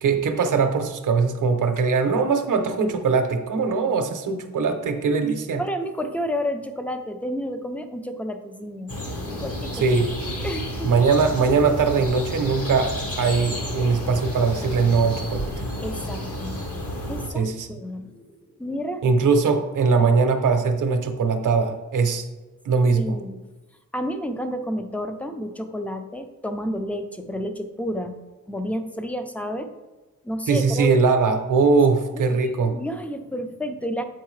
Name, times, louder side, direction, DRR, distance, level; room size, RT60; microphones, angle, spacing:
voice 1, 0.0-5.6 9.7-10.1 10.8-12.9 13.2-15.5 17.3-17.8 19.0-22.2 22.6-23.2 30.5-32.8, right 4 dB, 65° right, 7 dB, 0.7 m, -21 dB
voice 2, 4.9-8.9 9.4-9.8 10.4-10.9 15.8-16.5 17.1-17.4 17.7-18.2 18.6-19.0 23.0-23.4 23.9-28.1 28.5-29.7 30.2-30.9 32.1-34.0, equal, 5° left, 8 dB, 0.4 m, -30 dB
sound 1, 8.9-17.3, equal, 45° left, 1.2 m, -31 dB
7.6 x 4.6 x 3.1 m, 1.2 s
wide cardioid pair, 135°, 33 cm